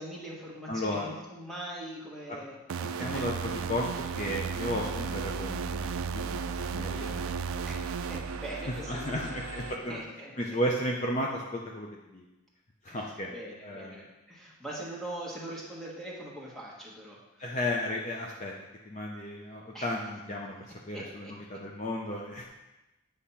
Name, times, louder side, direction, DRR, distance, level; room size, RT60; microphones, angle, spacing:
voice 1, 0.0-2.6 3.1-3.2 3.8-3.9 7.7-9.4 9.9-10.3 12.9-17.4 19.7-19.9 20.9-21.3, right 1 dB, ahead, -5 dB, 1.4 m, -42 dB
voice 2, 0.7-1.1 2.3-2.4 2.8-3.9 4.2-7.6 8.9-10.0 10.4-12.2 12.8-13.3 13.6-14.1 17.4-18.5 18.9-22.5, left 1 dB, 35° left, -2 dB, 0.6 m, -34 dB
sound 1, 2.7-9.2, right 6 dB, 75° right, 0.4 m, -35 dB
sound 2, 3.1-9.8, right 2 dB, 60° right, 0.9 m, -41 dB
8.4 x 3.6 x 5.6 m, 1.0 s
head